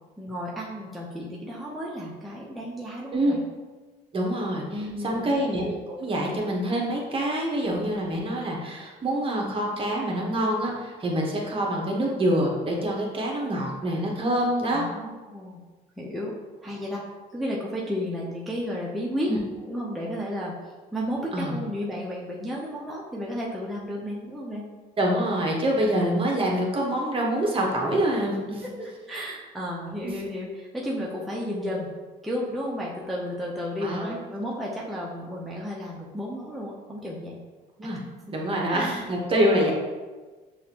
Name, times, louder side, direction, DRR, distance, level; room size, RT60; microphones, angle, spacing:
voice 1, 0.2-3.4 4.7-5.4 14.7-15.6 16.0-16.3 16.6-17.0 17.3-19.3 19.7-20.5 20.9-24.6 28.6-31.9 32.2-37.4 38.7-39.1, equal, ahead, -5 dB, 0.6 m, -33 dB
voice 2, 4.1-14.9 19.3-19.4 21.3-21.6 25.0-28.7 30.0-30.2 33.8-34.2 37.8-38.0 38.3-39.7, right 1 dB, 30° right, -1 dB, 1.0 m, -26 dB
6.4 x 2.5 x 2.9 m, 1.3 s
cardioid pair, 110°, 17 cm